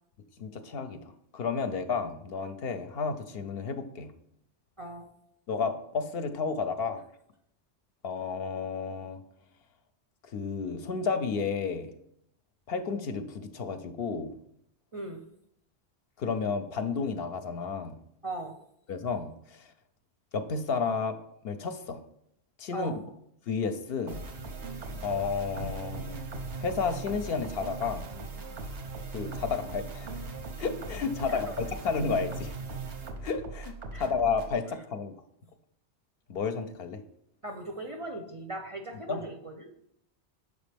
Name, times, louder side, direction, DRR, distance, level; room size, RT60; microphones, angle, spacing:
voice 1, 0.4-1.0 1.3-4.1 5.5-7.0 8.0-9.2 10.2-11.9 12.7-14.3 16.2-18.0 18.9-19.7 20.3-21.2 21.4-22.0 22.6-22.9 23.5-24.2 25.0-26.2 26.6-28.1 29.1-30.1 30.6-32.5 33.2-35.1 36.3-37.0 39.1-39.2, left 5 dB, 65° left, 8 dB, 0.7 m, -32 dB
voice 2, 14.9-15.2 18.2-18.5 22.7-23.0 31.3-31.4 33.9-34.1 37.4-39.7, right 2 dB, 40° right, 3 dB, 0.5 m, -38 dB
sound 1, 24.1-34.6, right 3 dB, 90° right, 1.2 m, -39 dB
6.7 x 5.0 x 3.4 m, 0.74 s
omnidirectional pair, 1.1 m